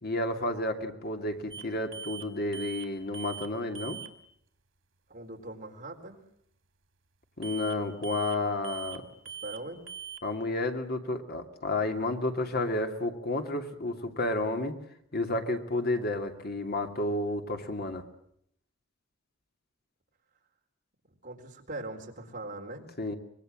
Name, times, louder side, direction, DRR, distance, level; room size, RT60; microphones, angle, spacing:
voice 1, 0.0-4.0 7.4-9.0 10.2-14.7 15.1-18.0 23.0-23.1, left 2 dB, 55° left, 6 dB, 2.5 m, -31 dB
sound 1, 1.5-1.7 1.9-2.3 2.5-2.9 3.1-3.5 3.7-4.1 7.4-7.8 8.0-8.4 8.6-9.0 9.3-9.6 9.9-10.2, right 8 dB, 85° right, 2.5 m, -41 dB
voice 2, 5.1-6.2 9.2-9.8 21.2-22.8, right 2 dB, 45° right, 2 dB, 4.2 m, -41 dB
25.0 x 22.0 x 7.6 m, 0.70 s
head